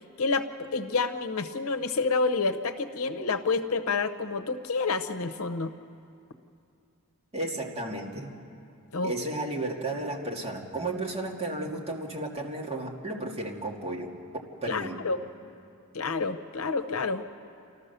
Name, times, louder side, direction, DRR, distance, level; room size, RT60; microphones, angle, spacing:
voice 1, 0.2-5.7 8.9-9.1 14.7-15.2 15.9-17.2, left 4 dB, 70° left, 8 dB, 0.8 m, -28 dB
voice 2, 7.3-8.4 9.0-14.1 14.6-15.0, right 2 dB, 30° right, -1 dB, 2.1 m, -33 dB
29.5 x 13.5 x 6.8 m, 2.6 s
head